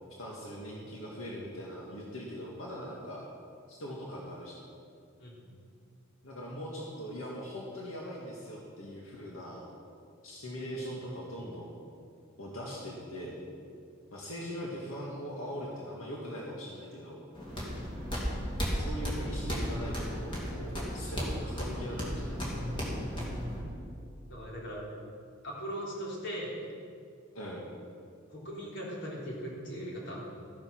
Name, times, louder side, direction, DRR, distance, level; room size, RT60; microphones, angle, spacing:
voice 1, 0.2-3.3 3.7-4.6 6.2-9.7 10.2-11.7 12.4-13.4 14.1-17.2 18.7-23.1 27.3-27.7, equal, 90° left, -3 dB, 1.9 m, -41 dB
sound 1, 17.3-23.6, equal, 25° left, 3.0 m, -34 dB
voice 2, 24.3-24.8 25.4-26.7 28.3-30.3, equal, 60° left, -4 dB, 3.5 m, -39 dB
14.0 x 9.5 x 5.9 m, 2.3 s
head